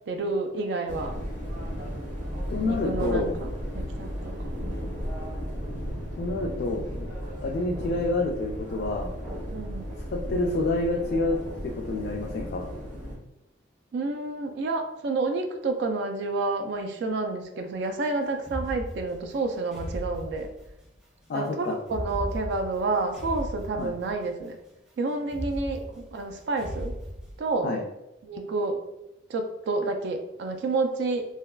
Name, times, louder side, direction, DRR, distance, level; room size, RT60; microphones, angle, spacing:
voice 1, 0.1-1.1 2.7-3.5 3.7-4.4 9.5-9.9 13.9-20.5 21.3-24.6 25.0-27.0 27.4-27.7 28.2-28.8 29.3-31.3, right 3 dB, 65° right, 5 dB, 0.3 m, -29 dB
sound 1, 0.9-13.2, equal, 45° right, 0.9 m, -34 dB
voice 2, 2.5-3.4 6.2-6.8 7.4-9.1 10.1-11.4 11.6-12.7 21.3-21.7 23.8-23.9 27.6-27.8, left 2 dB, 60° left, 0 dB, 0.3 m, -28 dB
sound 2, 18.4-21.0 21.8-24.4 25.2-27.4, equal, 5° right, 0.4 m, -37 dB
3.3 x 2.3 x 2.2 m, 0.90 s
head